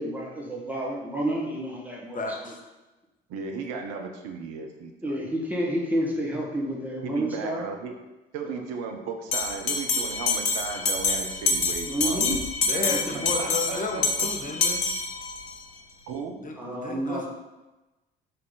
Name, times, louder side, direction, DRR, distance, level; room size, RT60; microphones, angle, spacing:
voice 1, 0.0-2.5 5.0-7.7 8.4-8.6 11.9-12.4 12.8-13.2 16.6-17.2, right 1 dB, 5° right, -3 dB, 1.8 m, -30 dB
voice 2, 2.1-2.6 12.6-14.9 16.4-17.3, left 3 dB, 25° left, 2 dB, 1.3 m, -33 dB
voice 3, 3.3-5.2 7.0-7.9 8.3-12.2 12.8-13.0 13.4-14.3 16.1-16.4, right 5 dB, 55° right, 4 dB, 0.9 m, -35 dB
Bell, 9.3-15.5, left 4 dB, 85° left, 0.6 m, -27 dB
6.6 x 3.6 x 4.0 m, 1.1 s
figure-of-eight pair, 50°, 30 cm